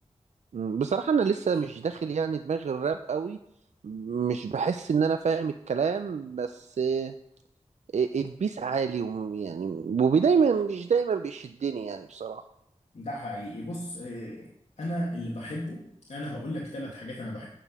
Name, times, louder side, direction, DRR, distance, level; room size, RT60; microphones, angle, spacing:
voice 1, 0.5-3.4 3.8-7.1 7.9-12.4, right 6 dB, 80° right, 8 dB, 0.4 m, -27 dB
voice 2, 12.9-14.5 14.8-15.8 16.1-17.5, left 1 dB, 80° left, -3 dB, 1.4 m, -35 dB
8.3 x 5.5 x 6.0 m, 0.75 s
wide cardioid pair, 55°, 12 cm